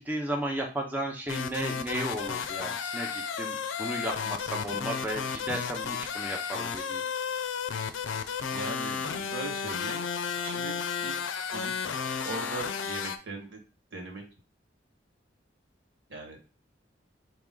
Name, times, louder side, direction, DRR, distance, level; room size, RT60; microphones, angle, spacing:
voice 1, 0.0-7.0, right 1 dB, 10° right, 1 dB, 0.5 m, -34 dB
sound 1, 1.3-13.2, left 6 dB, 80° left, 0.5 m, -33 dB
voice 2, 8.5-10.1 10.4-11.8 12.2-13.6 13.9-14.2 16.1-16.4, right 2 dB, 65° right, 1 dB, 1.6 m, -40 dB
4.7 x 3.0 x 3.7 m, 0.32 s
head